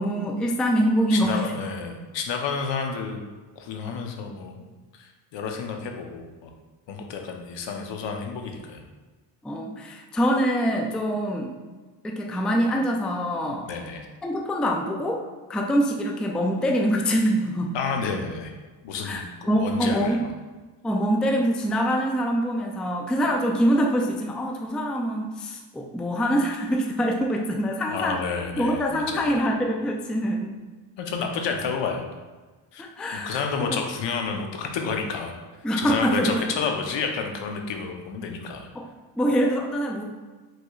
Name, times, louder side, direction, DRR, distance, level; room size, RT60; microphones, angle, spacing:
voice 1, 0.0-1.5 9.4-11.5 12.0-13.7 14.2-17.8 19.0-20.2 20.8-28.2 28.6-30.6 32.8-33.8 35.6-36.5 38.8-38.9 39.2-40.0, equal, ahead, 2 dB, 0.3 m, -24 dB
voice 2, 1.1-3.3 3.6-4.7 4.9-6.5 6.9-8.8 13.7-14.1 17.7-18.5 18.8-20.3 27.9-29.3 31.0-32.1 32.7-32.8 33.1-35.3 35.8-38.7, left 5 dB, 65° left, 3 dB, 0.8 m, -30 dB
4.8 x 3.9 x 2.3 m, 1.3 s
cardioid pair, 80°, 47 cm